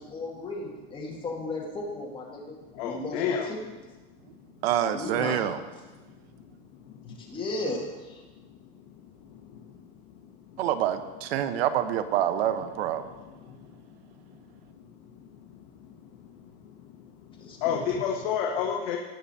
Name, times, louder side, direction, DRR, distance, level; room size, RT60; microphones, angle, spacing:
voice 1, 0.0-2.6 2.8-3.7 4.9-5.4 7.2-8.2 17.4-17.8, left 2 dB, 15° left, -1 dB, 2.0 m, -35 dB
voice 2, 2.7-3.5 6.4-6.5 7.0-7.2 9.3-9.6 13.3-13.6 14.9-15.3 15.8-16.0 16.4-16.5 16.9-17.1 17.6-19.0, left 7 dB, 55° left, 1 dB, 1.4 m, -30 dB
voice 3, 4.6-5.6 10.6-13.0, right 11 dB, 75° right, 11 dB, 1.0 m, -26 dB
18.0 x 6.7 x 4.3 m, 1.2 s
supercardioid pair, 165°, 31 cm